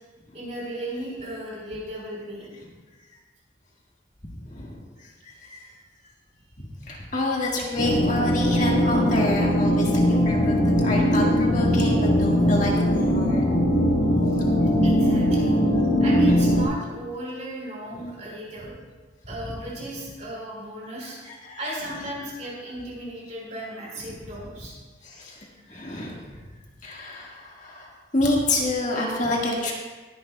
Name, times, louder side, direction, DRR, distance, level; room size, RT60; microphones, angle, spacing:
voice 1, 0.3-2.5 14.8-15.6 16.0-18.7 19.3-21.2 21.6-24.7, right 1 dB, 40° right, -4 dB, 3.9 m, -36 dB
voice 2, 4.4-5.8 6.6-13.4 17.9-18.1 21.0-21.6 25.0-26.3 26.8-29.7, left 1 dB, 40° left, -3 dB, 1.7 m, -28 dB
sound 1, 7.8-16.6, equal, 55° left, 3.2 m, -20 dB
21.0 x 10.5 x 2.3 m, 1.3 s
head